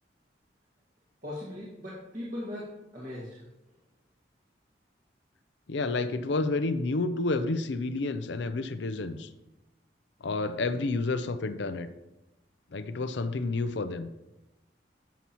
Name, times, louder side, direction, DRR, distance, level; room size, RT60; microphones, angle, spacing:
voice 1, 1.2-3.8, left 1 dB, 45° right, -8 dB, 1.9 m, -39 dB
voice 2, 5.7-9.3 10.2-11.9 12.7-14.1, left 3 dB, 80° left, 10 dB, 0.6 m, -30 dB
11.0 x 7.0 x 3.0 m, 0.99 s
head